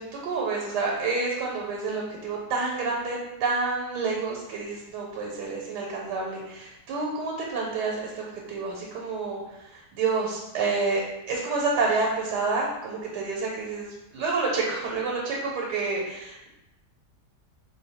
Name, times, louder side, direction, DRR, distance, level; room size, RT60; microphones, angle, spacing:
voice 1, 0.0-11.0 11.3-16.5, right 4 dB, 90° right, -2 dB, 1.2 m, -29 dB
2.8 x 2.1 x 4.1 m, 0.95 s
omnidirectional pair, 1.8 m